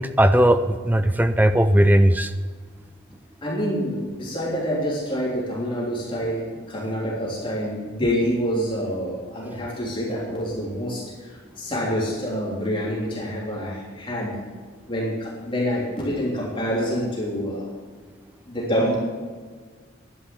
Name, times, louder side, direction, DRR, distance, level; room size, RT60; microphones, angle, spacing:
voice 1, 0.0-2.3, right 1 dB, 10° right, 10 dB, 0.4 m, -18 dB
voice 2, 3.4-14.4 14.9-17.7 18.5-19.0, equal, 25° left, -5 dB, 3.4 m, -27 dB
11.5 x 10.5 x 7.1 m, 1.5 s
head